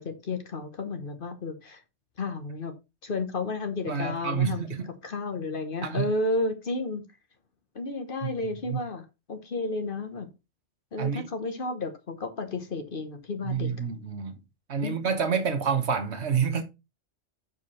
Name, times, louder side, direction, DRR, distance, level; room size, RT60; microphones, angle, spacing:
voice 1, 0.0-1.8 2.2-2.7 3.0-4.6 5.0-7.0 7.7-10.3 10.9-13.7 14.8-15.0, left 3 dB, 50° left, 1.2 m, -32 dB
voice 2, 3.9-4.9 5.8-6.1 8.2-8.3 8.7-8.8 11.0-11.3 13.4-14.4 14.7-16.6, right 6 dB, 65° right, 1.3 m, -28 dB
6.8 x 4.8 x 4.2 m
omnidirectional pair, 1.2 m